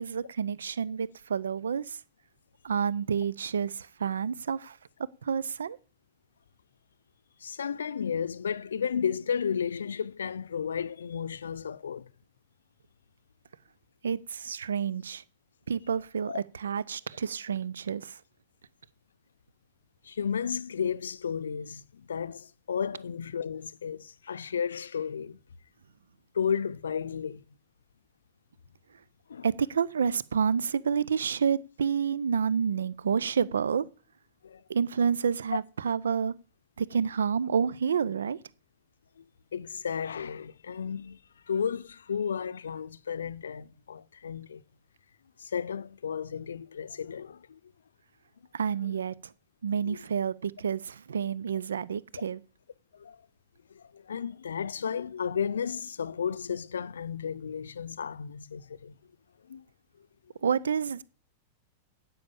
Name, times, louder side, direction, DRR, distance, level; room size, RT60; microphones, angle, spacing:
voice 1, 0.0-2.0 2.6-4.8 5.2-5.8 14.0-15.2 15.7-18.2 29.4-33.9 34.7-36.3 36.8-38.4 48.5-49.3 49.6-52.4 60.4-61.0, right 6 dB, 80° right, 0.5 m, -29 dB
voice 2, 7.4-12.1 16.3-16.4 20.0-25.4 26.3-27.4 29.3-29.5 34.4-34.6 35.5-35.6 39.2-39.3 39.5-41.2 41.5-44.6 45.4-47.6 49.9-50.0 52.9-53.2 53.7-59.0 59.5-59.6, left 7 dB, 80° left, 0.6 m, -33 dB
10.0 x 8.4 x 7.0 m
hypercardioid pair, 100°, 0 cm